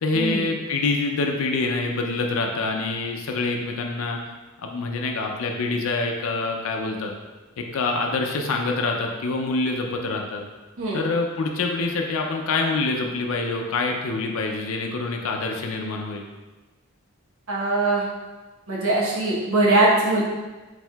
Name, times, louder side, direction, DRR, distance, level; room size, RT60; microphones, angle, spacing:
voice 1, 0.0-4.2 4.6-7.1 7.6-10.4 10.9-16.2, left 3 dB, 65° left, 2 dB, 0.4 m, -26 dB
voice 2, 17.5-18.0 18.7-20.2, right 2 dB, 70° right, -5 dB, 1.0 m, -21 dB
4.4 x 4.1 x 2.3 m, 1.2 s
head